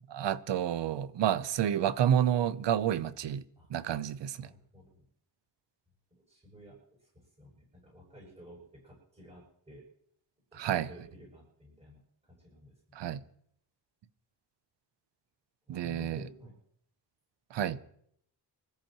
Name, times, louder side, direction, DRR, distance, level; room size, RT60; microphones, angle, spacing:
voice 1, 0.1-3.4 3.7-4.5 10.6-10.9 13.0-13.2 15.7-16.2 17.5-17.8, right 10 dB, 90° right, 0.8 m, -29 dB
voice 2, 4.4-5.0 6.1-9.9 10.5-12.7 15.7-16.5, equal, 15° right, 7.1 m, -53 dB
25.5 x 14.0 x 3.0 m
wide cardioid pair, 160°, 42 cm